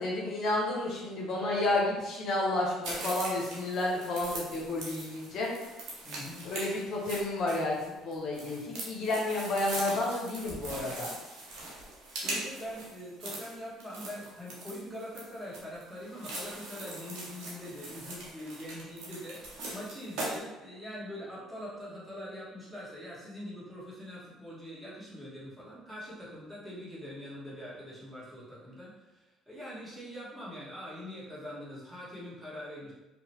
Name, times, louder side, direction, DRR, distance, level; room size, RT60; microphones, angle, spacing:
voice 1, 0.0-5.5 6.4-11.1, left 2 dB, 60° left, -2 dB, 0.6 m, -31 dB
sound 1, 2.8-20.4, right 2 dB, 70° right, 0.8 m, -41 dB
voice 2, 6.0-6.4 12.1-32.9, equal, 5° right, -8 dB, 1.3 m, -43 dB
2.7 x 2.1 x 2.9 m, 1.1 s
hypercardioid pair, 60°, 0 cm